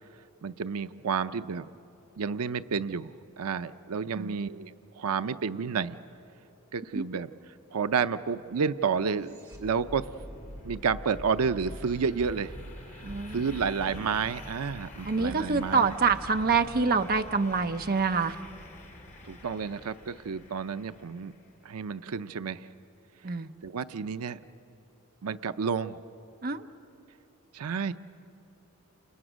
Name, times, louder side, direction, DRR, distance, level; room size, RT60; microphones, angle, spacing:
voice 1, 0.4-1.7 2.2-6.0 6.7-9.3 9.6-10.1 10.6-12.5 12.9-13.0 13.3-15.9 19.2-21.3 21.6-22.7 23.6-24.4 25.2-26.0 27.5-27.9, right 6 dB, 90° right, 12 dB, 0.5 m, -30 dB
sound 1, 6.4-14.7, equal, 10° right, 3.6 m, -47 dB
sound 2, 9.8-21.4, left 1 dB, 35° left, 2.6 m, -47 dB
voice 2, 13.0-13.4 15.1-18.4 23.2-23.5 26.4-26.6, right 4 dB, 40° right, 7 dB, 0.7 m, -26 dB
29.5 x 29.5 x 6.3 m, 2.9 s
head